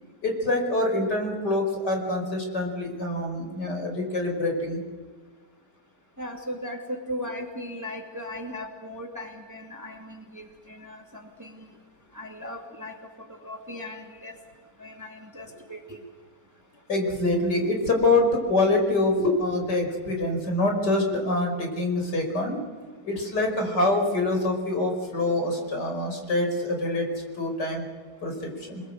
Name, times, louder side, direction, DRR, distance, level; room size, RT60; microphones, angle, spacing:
voice 1, 0.2-4.8 16.9-22.6 23.0-27.1 27.4-27.8 28.2-28.8, left 2 dB, 70° left, 3 dB, 5.8 m, -25 dB
voice 2, 6.2-11.7 12.1-14.3 14.8-16.0, left 1 dB, 10° right, 2 dB, 2.7 m, -38 dB
28.5 x 21.5 x 7.9 m, 1.5 s
omnidirectional pair, 1.9 m